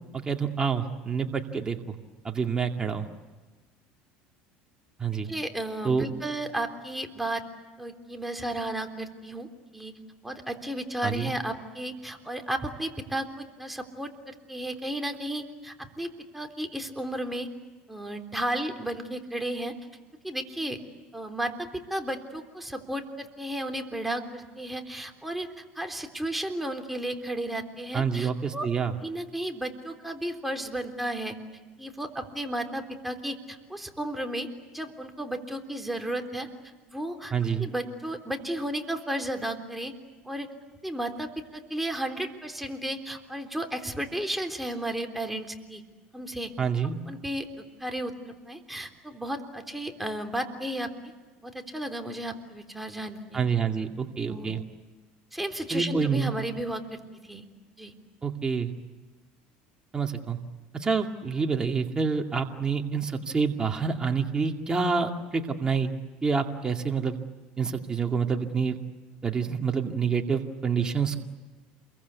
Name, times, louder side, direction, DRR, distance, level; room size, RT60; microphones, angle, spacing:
voice 1, 0.1-1.9 2.2-3.1 5.0-5.3 5.8-6.1 11.0-11.3 27.9-28.9 37.3-37.7 46.6-46.9 53.3-54.6 55.7-56.3 58.2-58.7 59.9-60.4 60.7-65.9 66.2-67.1 67.6-68.8 69.2-71.2, right 5 dB, 20° right, 3 dB, 2.2 m, -27 dB
voice 2, 5.2-7.4 7.8-9.9 10.2-17.5 17.9-19.7 20.2-20.8 21.1-28.7 29.0-31.4 31.8-34.5 34.7-36.5 36.9-37.3 37.6-39.9 40.3-40.5 40.8-45.8 46.1-46.5 46.8-51.1 51.4-53.4 54.2-54.6 55.3-57.5 57.8-57.9, right 1 dB, 5° right, 4 dB, 3.6 m, -33 dB
28.5 x 23.0 x 8.4 m, 1.3 s
supercardioid pair, 105°, 4 cm